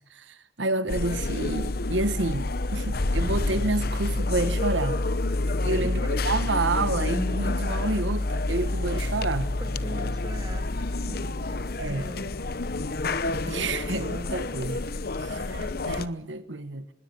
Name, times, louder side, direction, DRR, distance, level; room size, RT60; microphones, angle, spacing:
voice 1, 0.1-5.0 5.6-9.6 11.8-12.1 13.5-14.8 15.2-16.9, right 2 dB, 85° right, 1.3 m, -29 dB
sound 1, 0.9-16.1, left 2 dB, 55° left, 0.9 m, -28 dB
voice 2, 9.6-10.7 11.0-12.4, right 1 dB, 25° right, 2.3 m, -41 dB
25.5 x 21.0 x 6.8 m
head